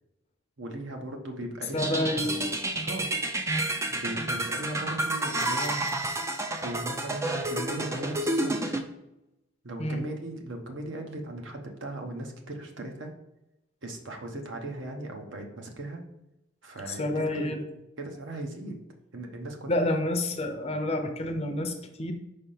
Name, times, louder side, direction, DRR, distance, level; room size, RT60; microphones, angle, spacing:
voice 1, 0.6-2.3 2.8-3.1 3.9-5.9 6.6-8.6 9.6-13.1 13.8-16.0 16.6-17.6 18.0-18.8 19.1-20.0, right 1 dB, 60° right, 3 dB, 0.9 m, -37 dB
voice 2, 1.7-2.5 9.8-10.0 16.9-17.6 19.7-22.1, left 1 dB, 30° left, 5 dB, 0.6 m, -29 dB
sound 1, 1.8-8.8, right 1 dB, 15° right, 0.4 m, -30 dB
5.4 x 3.4 x 5.5 m, 0.92 s
head